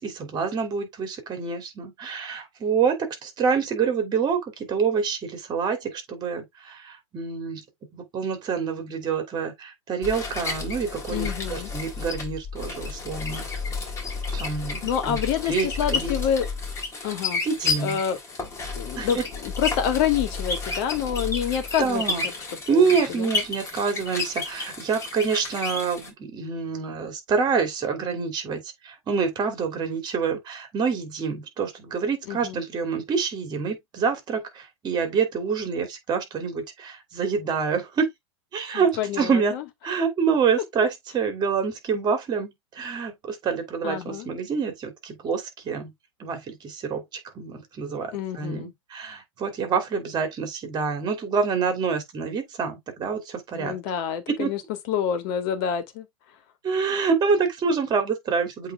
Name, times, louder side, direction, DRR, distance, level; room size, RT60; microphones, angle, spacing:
voice 1, 0.0-7.6 7.9-13.5 14.3-15.2 15.5-16.1 16.9-17.1 17.4-18.0 19.0-19.2 21.8-22.3 22.7-38.1 38.5-39.5 39.8-45.9 46.2-53.7 54.3-54.5 56.6-58.7, right 5 dB, 25° right, 2.9 m, -27 dB
sound 1, 10.0-26.1, left 4 dB, 15° left, 2.9 m, -31 dB
voice 2, 11.1-11.7 14.8-16.5 17.0-17.4 17.8-18.2 18.8-22.3 22.7-22.9 23.1-23.3 32.3-32.6 39.0-39.6 43.8-44.3 48.1-48.7 53.5-54.6 54.9-56.1, left 9 dB, 45° left, 2.0 m, -27 dB
8.0 x 3.6 x 3.5 m
hypercardioid pair, 120°, 17 cm